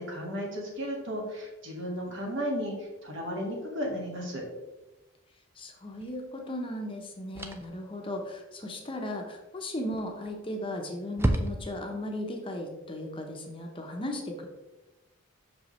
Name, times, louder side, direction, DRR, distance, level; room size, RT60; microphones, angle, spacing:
voice 1, 0.0-4.4, equal, 60° right, -2 dB, 1.7 m, -34 dB
voice 2, 5.6-14.5, left 1 dB, 25° left, 2 dB, 0.8 m, -36 dB
sound 1, 6.0-6.2 7.3-7.8 9.9-10.4 10.7-10.8 11.2-12.0, right 1 dB, 10° right, 0.4 m, -30 dB
6.2 x 5.0 x 3.1 m, 1.1 s
head